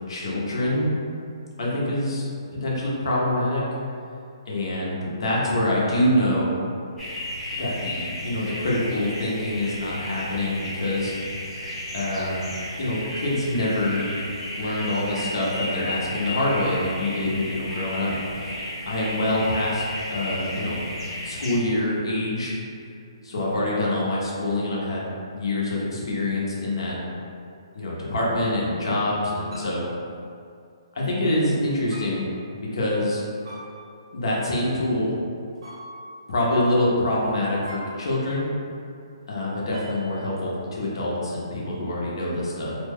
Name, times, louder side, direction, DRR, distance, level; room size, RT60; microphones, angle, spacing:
voice 1, 0.1-1.0 1.6-3.6 4.5-6.5 7.6-11.1 11.9-12.5 12.8-14.0 14.6-18.5 18.8-19.8 20.1-20.8 21.2-22.5 23.2-27.0 27.7-29.9 30.9-32.3 32.6-33.2 34.1-35.1 36.3-38.4 39.3-42.7, left 1 dB, 65° left, -5 dB, 0.9 m, -25 dB
sound 1, 7.0-21.6, left 1 dB, 10° left, 0.8 m, -34 dB
sound 2, 26.3-27.0 28.0-28.7 29.5-30.0 31.9-32.4 33.4-34.1 35.6-36.3 37.7-38.4 39.7-40.3, equal, 65° right, 0.7 m, -44 dB
2.9 x 2.1 x 3.5 m, 2.4 s
hypercardioid pair, 155°, 3 cm